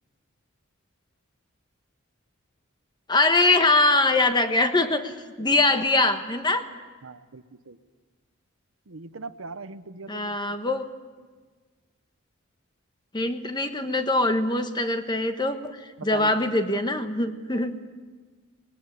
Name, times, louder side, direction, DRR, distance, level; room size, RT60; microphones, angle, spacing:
voice 1, 3.1-5.1 5.4-6.7 10.1-10.9 13.1-15.8 16.0-17.7, left 2 dB, 20° left, 8 dB, 1.2 m, -23 dB
voice 2, 7.0-7.8 8.9-10.4 16.0-16.3 17.5-17.7, right 4 dB, 70° right, 12 dB, 0.9 m, -40 dB
20.5 x 18.0 x 9.8 m, 1.4 s
head